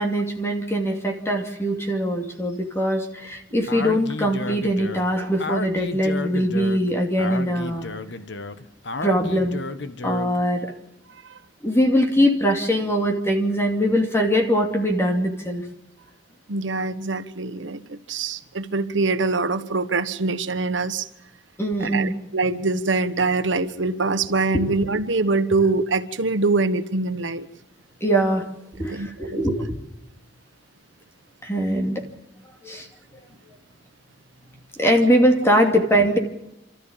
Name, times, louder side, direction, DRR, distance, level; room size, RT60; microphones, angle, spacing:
voice 1, 0.0-7.9 9.0-9.6 10.0-10.7 11.6-15.6 21.6-22.1 28.0-28.4 28.8-29.8 31.4-32.0 32.6-32.9 34.8-36.2, equal, 15° left, 2 dB, 2.6 m, -22 dB
Speech, 3.7-10.4, left 2 dB, 65° left, 1.3 m, -32 dB
voice 2, 16.5-21.1 21.8-27.5 28.9-29.4, right 3 dB, 85° right, 11 dB, 1.3 m, -24 dB
29.0 x 13.5 x 8.8 m, 0.87 s
head